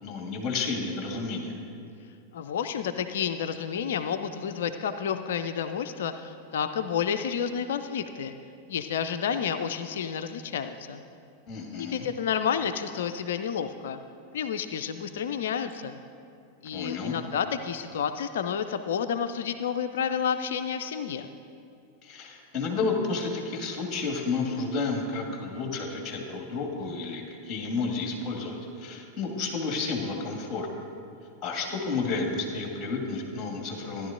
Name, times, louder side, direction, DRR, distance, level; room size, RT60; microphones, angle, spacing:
voice 1, 0.0-1.5 11.5-12.1 16.7-17.2 22.0-30.7 31.4-34.1, left 4 dB, 25° left, 1 dB, 1.9 m, -31 dB
voice 2, 2.3-8.3 8.7-11.0 11.8-14.0 14.3-16.0 16.6-21.3, left 7 dB, 60° left, 9 dB, 0.4 m, -30 dB
14.5 x 10.5 x 2.6 m, 2.5 s
figure-of-eight pair, 90°, 0 cm